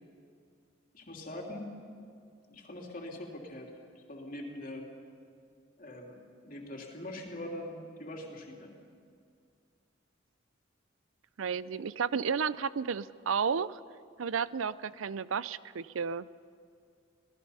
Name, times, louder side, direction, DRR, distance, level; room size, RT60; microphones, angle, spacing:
voice 1, 0.9-1.7 2.5-4.9 5.8-8.7, left 1 dB, 45° left, 0 dB, 3.0 m, -43 dB
voice 2, 11.4-13.8 14.2-16.3, right 6 dB, 85° right, 17 dB, 0.5 m, -32 dB
26.5 x 18.0 x 5.6 m, 2.3 s
head